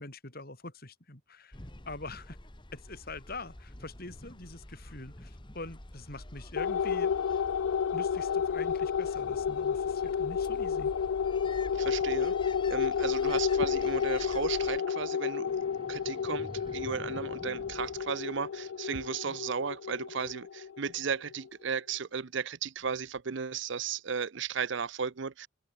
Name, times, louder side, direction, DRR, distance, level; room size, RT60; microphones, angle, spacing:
voice 1, 0.0-1.6 1.8-2.4 2.7-7.2 7.9-10.9 19.2-19.3, left 2 dB, 45° left, 4.9 m, -44 dB
sound 1, 1.5-14.8, left 1 dB, 25° left, 1.7 m, -48 dB
sound 2, 6.6-21.3, left 7 dB, 80° left, 0.4 m, -31 dB
voice 2, 11.7-25.5, right 6 dB, 60° right, 0.6 m, -35 dB
sound 3, 15.5-18.9, equal, 25° right, 2.6 m, -48 dB
head